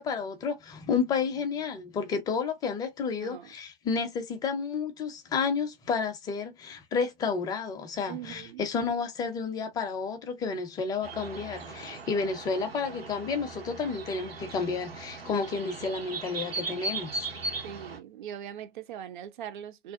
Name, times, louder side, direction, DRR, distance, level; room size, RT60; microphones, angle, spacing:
voice 1, 0.0-17.3, left 5 dB, 15° left, 0.4 m, -31 dB
voice 2, 8.1-8.7 17.6-19.9, right 10 dB, 55° right, 0.5 m, -41 dB
sound 1, 11.0-18.0, right 3 dB, 85° right, 0.8 m, -38 dB
2.5 x 2.2 x 2.5 m
figure-of-eight pair, 110°, 29 cm